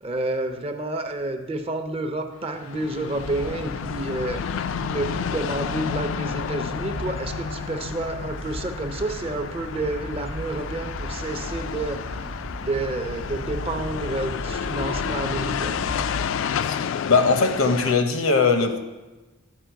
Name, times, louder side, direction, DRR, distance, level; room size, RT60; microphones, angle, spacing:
voice 1, 0.0-12.2 12.6-15.8, right 2 dB, 30° right, 7 dB, 0.5 m, -30 dB
sound 1, 2.3-17.9, left 7 dB, 70° left, 0.3 m, -31 dB
sound 2, 3.2-16.0, equal, 80° right, 0.7 m, -36 dB
voice 2, 17.1-18.8, left 4 dB, 90° left, 7 dB, 0.8 m, -20 dB
11.5 x 4.5 x 4.6 m, 1.2 s
head